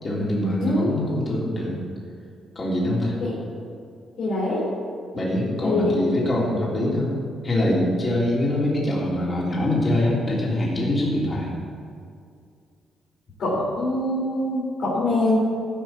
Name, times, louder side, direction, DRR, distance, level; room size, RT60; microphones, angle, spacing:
voice 1, 0.0-1.8 2.5-3.2 5.1-7.1 7.4-11.5, left 1 dB, 30° left, -4 dB, 3.2 m, -24 dB
voice 2, 0.6-0.9 3.2-3.3 4.2-4.7 5.6-6.0 13.4-15.4, left 1 dB, 70° left, -7 dB, 3.9 m, -24 dB
15.0 x 6.6 x 7.5 m, 2.3 s
cardioid pair, 125°, 0 cm